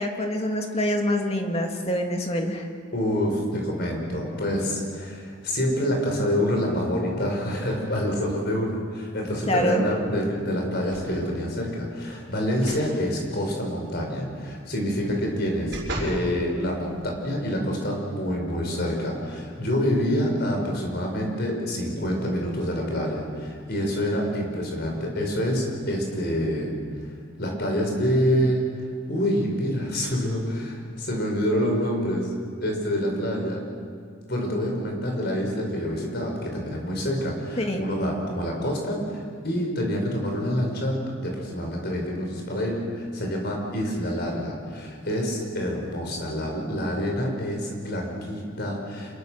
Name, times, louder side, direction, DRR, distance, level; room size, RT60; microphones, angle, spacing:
voice 1, 0.0-2.7 9.5-9.8 37.6-37.8, equal, 30° left, 3 dB, 2.2 m, -25 dB
voice 2, 2.9-26.7 27.0-27.1 27.4-32.3 32.6-33.6 34.3-49.2, equal, 50° left, 1 dB, 5.7 m, -27 dB
sound 1, 10.9-11.4 12.5-12.9 13.3-13.4 15.0-16.3 16.9-17.0, right 1 dB, 55° right, 7.0 m, -35 dB
27.0 x 22.5 x 6.7 m, 2.1 s
head